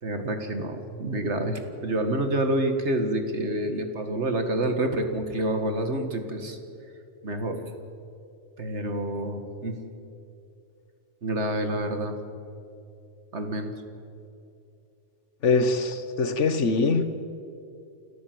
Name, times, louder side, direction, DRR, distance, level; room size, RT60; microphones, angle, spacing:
voice 1, 0.0-6.6 7.2-7.6 8.6-9.8 11.2-12.2 13.3-13.7, right 1 dB, 65° right, 6 dB, 2.1 m, -28 dB
voice 2, 15.4-17.1, left 4 dB, 75° left, 10 dB, 1.5 m, -23 dB
29.0 x 13.5 x 7.8 m, 2.6 s
omnidirectional pair, 1.3 m